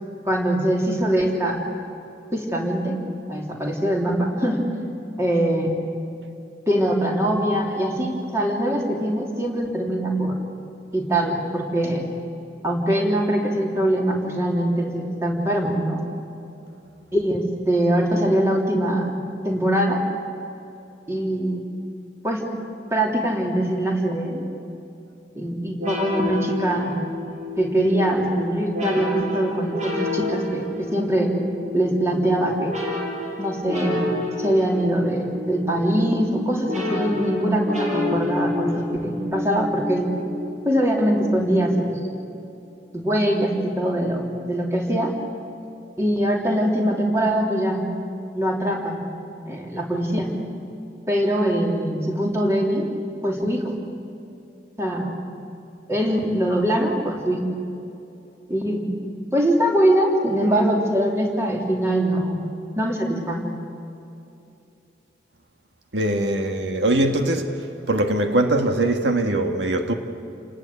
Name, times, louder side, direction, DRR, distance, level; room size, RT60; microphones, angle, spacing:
voice 1, 0.2-1.6 2.3-3.0 3.3-4.6 5.2-5.7 6.7-10.3 10.9-12.0 12.6-16.0 17.1-19.1 19.4-20.0 21.1-21.6 22.2-22.5 22.9-24.4 25.3-27.0 27.6-31.3 31.7-32.7 33.4-34.1 34.4-40.1 40.6-42.0 42.9-45.1 46.0-47.8 48.3-49.0 49.4-50.3 51.1-52.9 53.2-53.8 54.8-55.2 55.9-57.4 58.5-59.0 59.3-62.5 62.8-63.5, right 1 dB, 15° right, 3.3 m, -22 dB
sound 1, 25.8-42.0, left 1 dB, 40° right, 6.5 m, -30 dB
voice 2, 65.9-67.5 67.9-69.9, right 1 dB, 85° right, 1.7 m, -21 dB
30.0 x 19.0 x 8.5 m
head